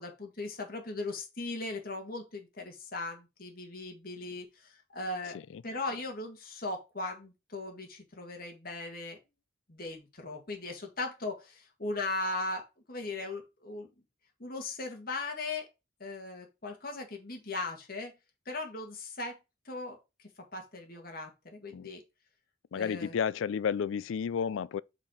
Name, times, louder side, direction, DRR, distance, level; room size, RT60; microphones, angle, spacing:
voice 1, 0.0-5.4 5.6-9.2 9.7-13.9 14.4-15.7 16.0-18.1 18.5-19.4 19.7-20.0 20.5-22.0 22.7-23.2, left 2 dB, 45° left, 1.8 m, -38 dB
voice 2, 22.7-24.8, left 7 dB, 75° left, 0.3 m, -31 dB
5.6 x 4.5 x 5.0 m
head